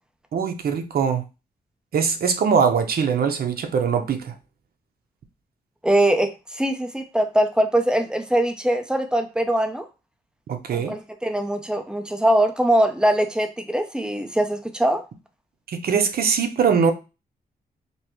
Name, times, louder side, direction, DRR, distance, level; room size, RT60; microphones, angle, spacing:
voice 1, 0.3-1.2 1.9-4.3 10.5-11.0 15.7-16.9, right 6 dB, 70° right, 0.7 m, -22 dB
voice 2, 5.8-9.9 10.7-15.0, right 1 dB, 5° right, 0.5 m, -22 dB
5.3 x 2.1 x 3.0 m
wide cardioid pair, 115°, 16 cm